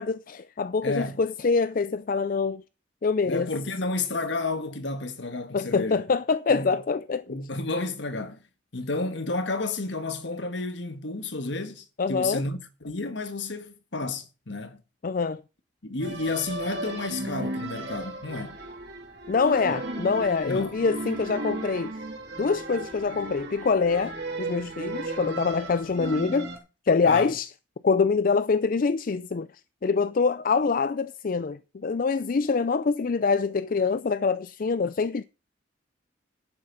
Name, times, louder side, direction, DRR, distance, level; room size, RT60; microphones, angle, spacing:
voice 1, 0.0-2.6 3.0-3.5 5.5-7.4 12.0-12.4 15.0-15.4 19.3-21.9 22.4-26.5 26.8-27.5 27.8-29.5 29.8-35.2, left 4 dB, 45° left, 0.4 m, -25 dB
voice 2, 0.8-1.2 3.3-6.0 6.5-6.8 7.3-8.4 8.7-14.8 15.8-18.6 19.7-19.8 20.4-20.8 25.8-25.9 27.0-27.3, left 3 dB, 65° left, 1.5 m, -31 dB
sound 1, 16.0-26.6, right 2 dB, 55° right, 2.8 m, -35 dB
11.0 x 8.7 x 4.0 m
head